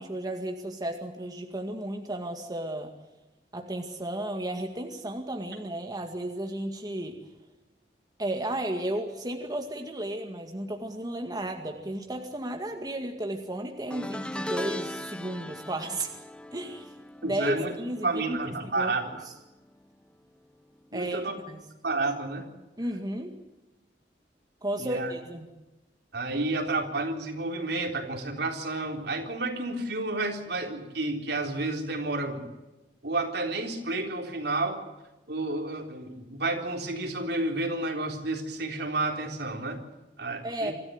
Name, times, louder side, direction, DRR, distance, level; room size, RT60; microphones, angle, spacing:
voice 1, 0.0-2.9 3.5-7.2 8.2-16.1 16.5-16.9 17.2-18.9 20.9-21.2 21.5-21.6 22.8-23.3 24.6-25.5 40.4-40.7, right 1 dB, 25° right, 3 dB, 2.1 m, -33 dB
sound 1, 13.9-19.3 19.6-19.9 21.2-21.3, left 1 dB, 5° left, 0.9 m, -39 dB
voice 2, 17.2-17.8 18.0-19.3 20.9-21.4 21.8-22.5 24.8-25.1 26.1-32.5 33.0-34.8 35.3-39.8 40.2-40.7, right 2 dB, 65° right, 3 dB, 3.8 m, -30 dB
25.0 x 14.5 x 9.4 m, 1.0 s
head